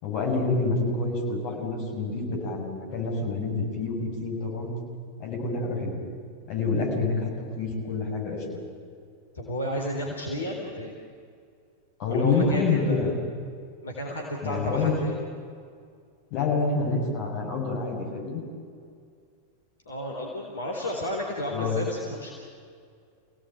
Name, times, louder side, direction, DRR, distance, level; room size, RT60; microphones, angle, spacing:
voice 1, 0.0-4.7 5.2-6.0 6.5-8.7 12.0-13.1 14.4-14.9 16.3-18.4 21.5-21.8, left 3 dB, 45° left, 0 dB, 7.2 m, -27 dB
voice 2, 9.3-10.9 12.1-13.2 13.8-15.2 19.9-22.3, left 1 dB, 70° left, 0 dB, 3.9 m, -32 dB
28.0 x 18.0 x 9.2 m, 2.2 s
figure-of-eight pair, 90°, 0 cm